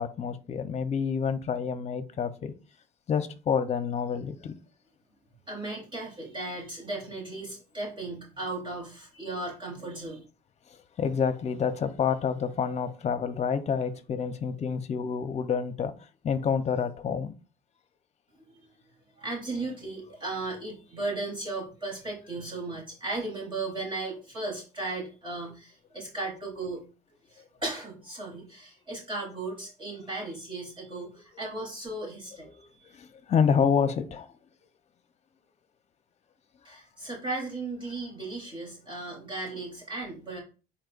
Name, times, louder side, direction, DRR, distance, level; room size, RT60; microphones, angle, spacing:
voice 1, 0.0-2.5 3.1-4.5 10.7-15.9 16.2-17.3 32.9-34.3, left 6 dB, 40° left, 0.9 m, -28 dB
voice 2, 5.5-10.2 19.2-26.8 27.3-32.5 36.6-40.4, right 2 dB, 30° right, 3.7 m, -36 dB
9.4 x 4.3 x 2.6 m
cardioid pair, 110°, 17 cm